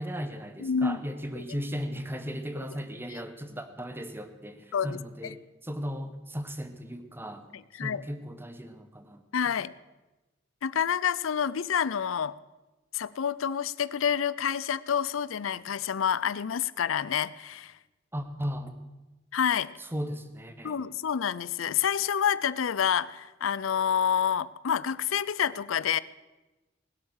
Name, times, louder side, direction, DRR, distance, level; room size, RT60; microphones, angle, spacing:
voice 1, 0.0-7.5 7.8-9.5 18.1-18.9 19.8-20.8, equal, 10° right, 9 dB, 1.1 m, -36 dB
voice 2, 0.6-1.0 1.4-1.5 4.7-5.3 7.8-8.0 9.3-9.7 10.6-12.4 12.9-17.7 19.3-19.7 20.6-26.0, left 8 dB, 85° left, 18 dB, 0.5 m, -28 dB
19.5 x 8.4 x 6.4 m, 1.1 s
head